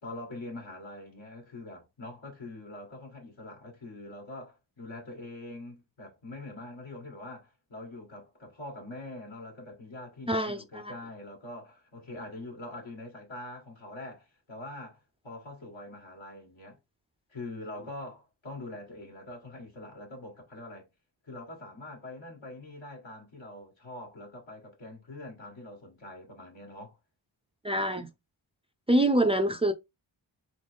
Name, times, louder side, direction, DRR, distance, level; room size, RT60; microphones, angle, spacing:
voice 1, 0.0-16.8 17.3-20.9 21.2-27.0, left 2 dB, 70° left, 2.1 m, -44 dB
voice 2, 10.3-10.9 27.6-28.1 28.9-29.7, right 1 dB, 10° right, 0.5 m, -25 dB
3.9 x 3.1 x 3.4 m
cardioid pair, 55°, 48 cm